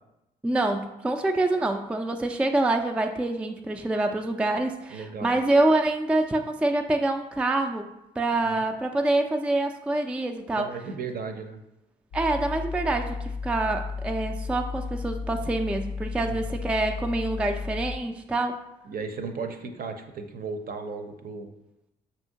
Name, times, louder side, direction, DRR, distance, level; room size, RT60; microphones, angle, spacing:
voice 1, 0.4-7.9 8.2-10.7 12.1-18.6, right 2 dB, 5° right, 4 dB, 0.3 m, -26 dB
voice 2, 4.9-5.4 8.5-8.6 10.5-11.6 16.2-16.5 18.9-21.5, right 4 dB, 45° right, 7 dB, 0.6 m, -35 dB
sound 1, 12.1-18.0, left 4 dB, 65° left, 0.5 m, -34 dB
5.5 x 2.7 x 2.8 m, 0.92 s
hypercardioid pair, 45°, 21 cm